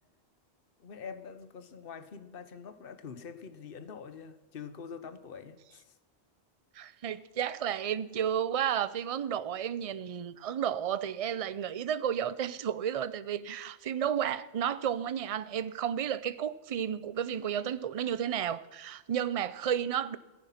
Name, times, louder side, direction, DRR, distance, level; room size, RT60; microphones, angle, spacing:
voice 1, 0.8-6.0, left 6 dB, 60° left, 1.2 m, -45 dB
voice 2, 6.8-20.2, right 9 dB, 40° right, 0.6 m, -32 dB
17.5 x 14.0 x 5.8 m
omnidirectional pair, 1.1 m